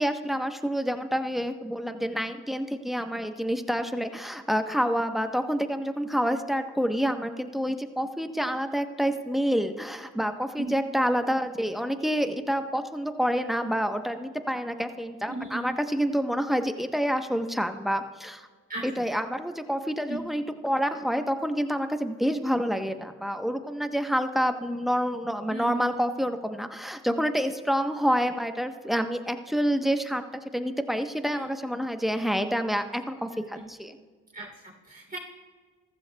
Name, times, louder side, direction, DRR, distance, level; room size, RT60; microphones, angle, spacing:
voice 1, 0.0-18.5 18.8-30.2 30.5-34.0, equal, ahead, 8 dB, 1.0 m, -28 dB
voice 2, 15.2-15.7 18.7-18.8 20.1-20.2 25.5-25.9 31.3-31.5 33.5-33.6 34.3-35.2, right 2 dB, 25° right, -3 dB, 3.2 m, -36 dB
15.0 x 14.0 x 2.3 m, 1.5 s
supercardioid pair, 50°, 31 cm